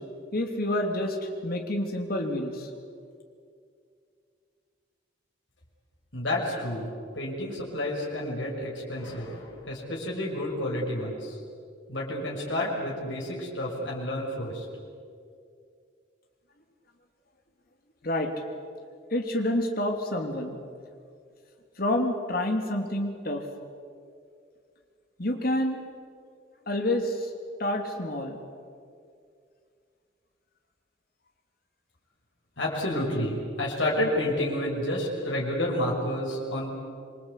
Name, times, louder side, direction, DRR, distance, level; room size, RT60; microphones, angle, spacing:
voice 1, 0.3-2.7 18.0-18.3 19.1-20.6 21.8-23.4 25.2-25.8 26.7-27.3 27.6-28.4, left 1 dB, 55° left, 3 dB, 3.2 m, -28 dB
voice 2, 6.1-6.9 7.1-11.4 11.9-14.6 32.6-36.8, left 1 dB, 85° left, -3 dB, 6.1 m, -30 dB
26.5 x 23.5 x 8.4 m, 2.3 s
head